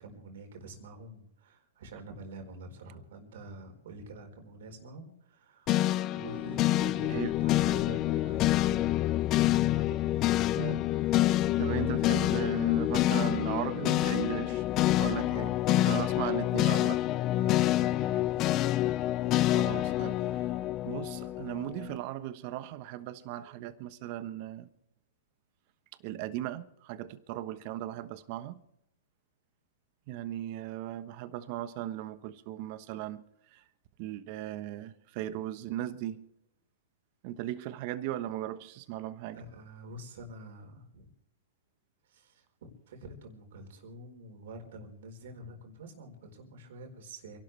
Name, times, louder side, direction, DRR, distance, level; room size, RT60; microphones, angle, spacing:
voice 1, 0.0-5.8 6.1-9.3 9.7-10.3 17.3-18.3 39.3-41.1 42.1-47.4, right 1 dB, 65° right, 4.4 m, -47 dB
sound 1, 5.7-22.0, left 15 dB, 35° left, 0.5 m, -27 dB
voice 2, 11.2-14.6 15.0-15.5 15.8-17.1 19.5-20.2 20.8-24.7 26.0-28.6 30.1-33.2 33.5-33.6 34.0-36.2 37.2-39.4, right 13 dB, 45° right, 1.2 m, -37 dB
28.5 x 12.0 x 3.4 m
hypercardioid pair, 125°, 0 cm